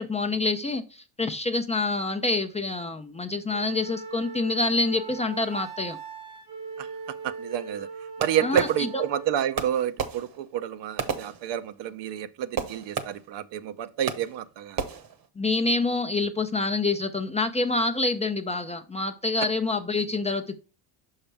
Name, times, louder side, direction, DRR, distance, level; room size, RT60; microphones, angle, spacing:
voice 1, 0.0-6.0 8.4-9.0 15.4-20.6, left 3 dB, 15° left, 0.5 m, -27 dB
Wind instrument woodwind instrument, 3.5-9.3, right 4 dB, 80° right, 1.7 m, -39 dB
voice 2, 7.2-7.9 8.2-14.9, right 10 dB, 60° right, 0.7 m, -29 dB
Fireworks, 8.2-9.2 9.5-12.0 12.6-13.5 14.1-14.5 14.8-15.3, right 7 dB, 45° right, 1.1 m, -34 dB
5.9 x 5.6 x 3.4 m
supercardioid pair, 95°, 48 cm